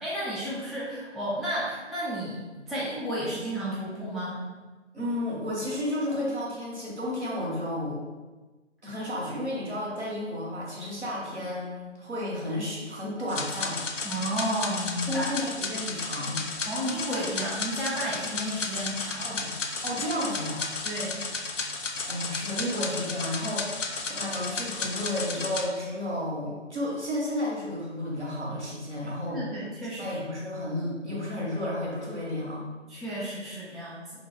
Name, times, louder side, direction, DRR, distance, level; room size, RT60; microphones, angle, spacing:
voice 1, 0.0-4.4 14.0-15.3 16.7-19.4 20.8-21.2 29.3-30.2 32.9-34.1, equal, ahead, -9 dB, 0.4 m, -32 dB
voice 2, 4.9-8.0 8.8-13.8 15.1-16.4 19.2-19.6 19.8-20.7 22.1-29.4 30.0-32.7, left 1 dB, 65° right, -5 dB, 1.1 m, -32 dB
sound 1, 13.3-25.7, left 3 dB, 80° left, 0.5 m, -33 dB
2.8 x 2.2 x 3.1 m, 1.3 s
figure-of-eight pair, 175°, 37 cm